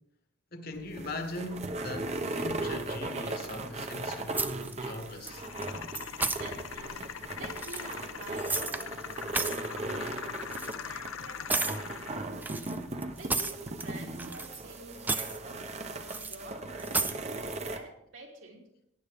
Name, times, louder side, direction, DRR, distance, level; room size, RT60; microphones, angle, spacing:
voice 1, 0.5-4.4 4.7-5.4, left 2 dB, 45° left, 1.3 m, -40 dB
sound 1, 0.7-17.8, right 2 dB, 30° right, 0.8 m, -38 dB
sound 2, 4.3-4.9 5.2-5.6 5.9-6.4 7.5-8.8 9.1-9.7 10.5-10.7 11.5-11.8 12.4-13.9 14.2-14.7 15.0-15.4 16.1-16.4 16.8-17.2, right 3 dB, 10° right, 0.4 m, -32 dB
sound 3, 5.3-12.3, left 7 dB, 85° left, 0.7 m, -41 dB
voice 2, 6.4-12.7 13.2-18.6, right 2 dB, 70° right, 2.6 m, -49 dB
18.5 x 9.4 x 3.5 m
head